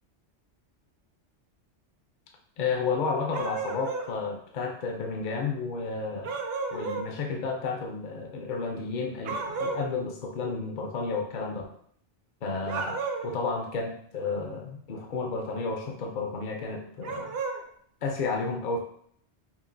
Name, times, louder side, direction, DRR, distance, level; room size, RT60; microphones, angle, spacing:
voice 1, 2.6-6.3 6.7-11.7 12.4-17.3 18.0-18.8, left 4 dB, 55° left, 2 dB, 0.6 m, -32 dB
sound 1, 3.3-4.1 6.2-7.1 9.3-9.9 12.6-13.4 17.0-17.6, right 4 dB, 65° right, 0.7 m, -33 dB
5.7 x 2.4 x 2.6 m, 0.64 s
omnidirectional pair, 1.2 m